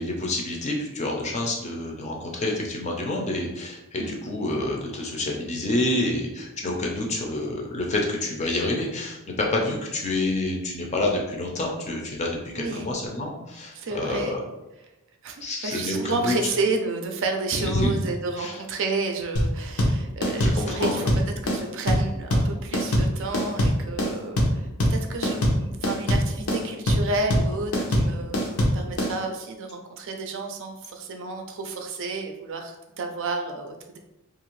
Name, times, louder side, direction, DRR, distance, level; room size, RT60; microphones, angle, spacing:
voice 1, 0.0-14.4 15.4-16.3 17.6-17.9 18.4-18.5 20.4-21.0, left 2 dB, 30° left, 0 dB, 0.5 m, -28 dB
voice 2, 12.6-12.9 13.7-14.4 15.2-34.0, right 3 dB, 60° right, 4 dB, 0.4 m, -31 dB
sound 1, 19.4-29.1, equal, 85° left, 0.7 m, -22 dB
2.8 x 2.5 x 3.0 m, 0.95 s
head